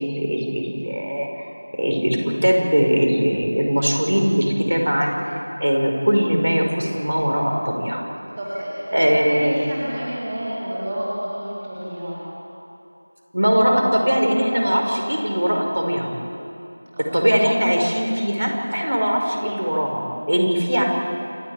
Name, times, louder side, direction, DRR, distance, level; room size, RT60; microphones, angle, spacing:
voice 1, 0.0-5.2 5.6-8.0 8.9-9.6 13.3-16.1 17.0-20.8, equal, 90° right, 1 dB, 5.3 m, -20 dB
voice 2, 8.4-12.2 16.9-17.2, equal, 10° right, -8 dB, 2.2 m, -30 dB
27.5 x 13.0 x 9.1 m, 2.8 s
figure-of-eight pair, 180°, 0 cm